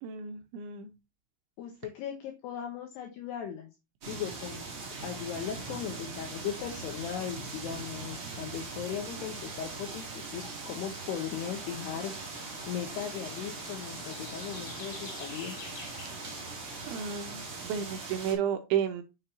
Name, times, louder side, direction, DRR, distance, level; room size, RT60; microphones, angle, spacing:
voice 1, 0.0-0.9 16.9-19.0, right 8 dB, 85° right, 7 dB, 2.8 m, -32 dB
voice 2, 1.6-3.7 4.1-4.7 5.0-12.1 12.7-15.6, left 9 dB, 80° left, 3 dB, 2.4 m, -38 dB
sound 1, 4.0-18.3, right 4 dB, 40° right, 2.1 m, -41 dB
sound 2, 11.4-17.6, left 4 dB, 40° left, 3.2 m, -48 dB
7.2 x 6.8 x 2.6 m, 0.26 s
omnidirectional pair, 6.0 m